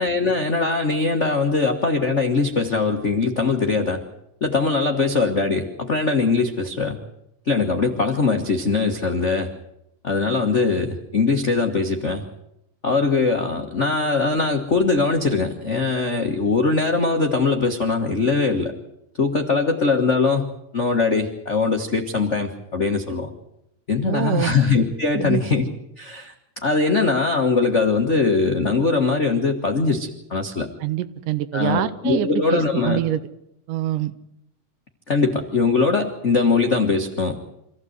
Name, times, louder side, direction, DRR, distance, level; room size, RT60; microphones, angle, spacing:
voice 1, 0.0-4.0 4.4-7.0 7.5-9.5 10.0-12.2 12.8-18.7 19.2-23.3 23.9-25.6 26.0-26.3 26.6-30.7 31.5-33.0 35.1-37.5, left 4 dB, 50° left, 3 dB, 0.8 m, -21 dB
voice 2, 24.1-24.6 25.1-25.4 30.8-33.2 33.7-34.1, right 13 dB, 90° right, 13 dB, 2.5 m, -25 dB
25.5 x 15.0 x 8.0 m, 0.81 s
omnidirectional pair, 3.6 m